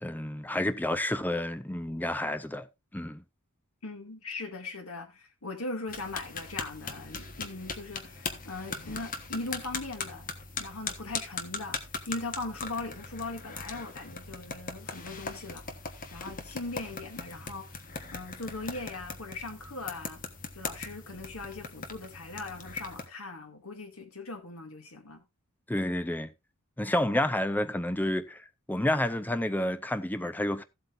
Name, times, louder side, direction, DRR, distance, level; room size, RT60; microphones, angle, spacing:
voice 1, 0.0-2.6 2.9-3.2 25.7-26.3 26.8-30.6, left 1 dB, 10° left, 0.5 m, -30 dB
voice 2, 3.8-10.3 10.6-11.8 12.1-15.6 16.1-17.7 18.1-20.2 20.5-25.2, left 2 dB, 70° left, 2.2 m, -39 dB
sound 1, 5.9-23.1, left 4 dB, 40° left, 1.2 m, -40 dB
15.0 x 8.0 x 2.5 m
head